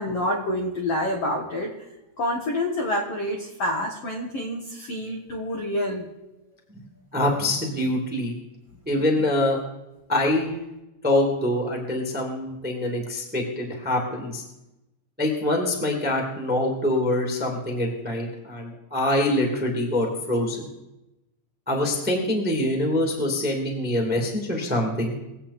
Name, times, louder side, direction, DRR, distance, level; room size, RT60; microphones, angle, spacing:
voice 1, 0.0-1.7 2.2-6.1, left 1 dB, 80° left, 0 dB, 1.3 m, -27 dB
voice 2, 7.1-8.3 8.8-9.6 10.1-10.5 11.0-14.4 15.2-20.7 21.7-25.1, left 1 dB, 5° right, 1 dB, 1.1 m, -24 dB
23.0 x 8.3 x 4.3 m, 0.95 s
omnidirectional pair, 5.1 m